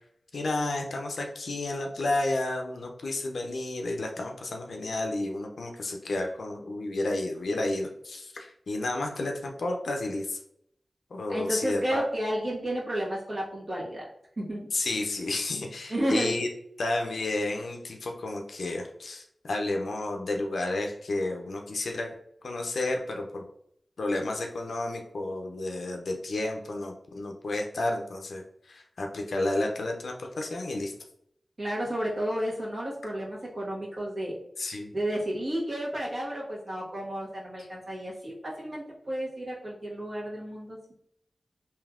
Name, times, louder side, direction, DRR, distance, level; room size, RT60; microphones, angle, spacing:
voice 1, 0.3-10.4 11.1-12.0 14.7-16.5 16.8-22.1 22.4-23.4 24.0-30.9 34.6-34.9, left 2 dB, 85° left, 2 dB, 0.4 m, -31 dB
voice 2, 11.3-14.0 14.4-14.6 15.9-16.4 31.6-34.3 34.9-40.9, equal, 60° right, -5 dB, 1.3 m, -32 dB
3.3 x 2.7 x 2.4 m, 0.70 s
cardioid pair, 45°, 0 cm